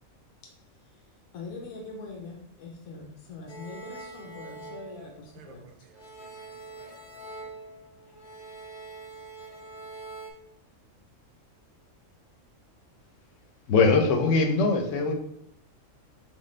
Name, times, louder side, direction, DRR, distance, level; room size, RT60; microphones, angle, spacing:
voice 1, 1.3-5.6, left 3 dB, 85° left, 1.2 m, -42 dB
sound 1, 3.5-5.6 5.9-10.3, right 3 dB, 40° left, 0.7 m, -44 dB
voice 2, 5.3-7.5, right 5 dB, 65° right, 0.5 m, -57 dB
voice 3, 13.7-15.1, left 4 dB, 65° left, 1.0 m, -21 dB
6.2 x 2.2 x 3.2 m
omnidirectional pair, 1.4 m